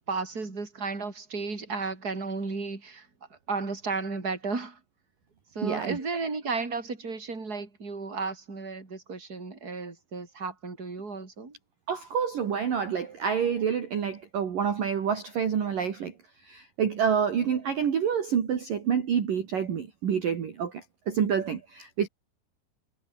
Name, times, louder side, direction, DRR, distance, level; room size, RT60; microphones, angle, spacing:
voice 1, 0.1-3.1 3.5-4.8 5.5-11.6, right 4 dB, 20° right, 5.1 m, -33 dB
voice 2, 5.6-6.0 11.9-16.1 16.4-22.1, right 7 dB, 50° right, 3.9 m, -28 dB
omnidirectional pair, 5.6 m